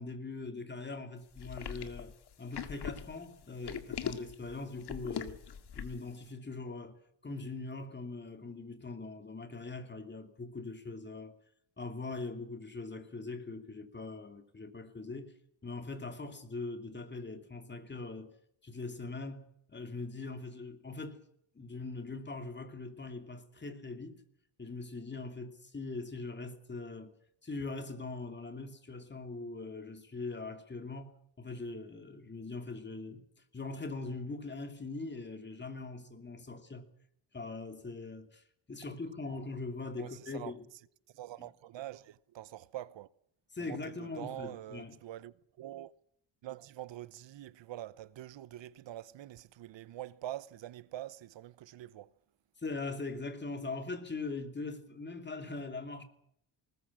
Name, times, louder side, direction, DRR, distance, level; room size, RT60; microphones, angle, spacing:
voice 1, 0.0-5.4 5.7-11.3 11.8-15.3 15.6-18.3 18.6-21.2 21.5-24.2 24.6-27.2 27.4-33.2 33.5-36.9 37.3-40.6 41.4-41.5 43.5-45.0 52.6-56.0, left 3 dB, 25° left, 2.8 m, -41 dB
sound 1, 1.4-6.1, left 8 dB, 60° left, 2.0 m, -41 dB
voice 2, 40.0-40.5 41.1-43.1 43.6-45.9 46.4-52.1, right 13 dB, 70° right, 1.0 m, -45 dB
20.0 x 20.0 x 7.4 m
cardioid pair, 130°, 46 cm